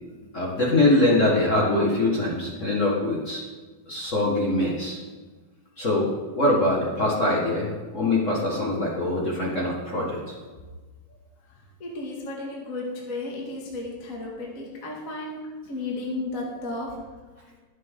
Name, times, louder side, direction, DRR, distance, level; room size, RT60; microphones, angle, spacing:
voice 1, 0.3-3.4 3.9-5.0 5.8-10.4, left 1 dB, 55° left, -4 dB, 0.8 m, -23 dB
voice 2, 11.8-15.4 15.6-17.0, left 2 dB, 30° left, -2 dB, 1.6 m, -33 dB
20.0 x 7.6 x 3.7 m, 1.4 s
omnidirectional pair, 4.2 m